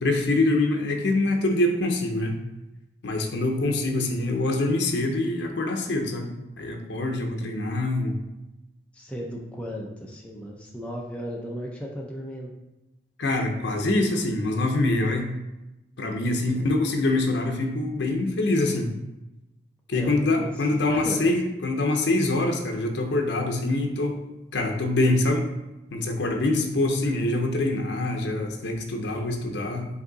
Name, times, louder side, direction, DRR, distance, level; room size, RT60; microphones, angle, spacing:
voice 1, 0.0-2.4 3.0-8.1 13.2-15.3 16.0-18.9 19.9-24.2 24.5-25.5 25.9-29.9, left 2 dB, 75° left, 3 dB, 0.6 m, -25 dB
voice 2, 8.9-12.5 16.5-16.7 19.9-21.3 26.2-26.5, equal, 5° left, -2 dB, 0.5 m, -36 dB
5.0 x 2.7 x 3.9 m, 0.97 s
head